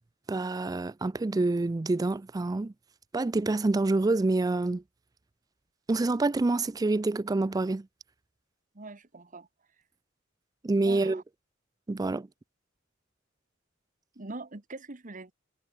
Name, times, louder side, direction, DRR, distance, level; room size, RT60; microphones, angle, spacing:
voice 1, 0.3-2.7 3.1-4.8 5.9-7.9 10.6-11.2 11.9-12.3, right 2 dB, 20° right, 0.3 m, -27 dB
voice 2, 8.7-9.5 10.8-11.2 14.1-15.3, right 2 dB, 40° right, 1.4 m, -42 dB
head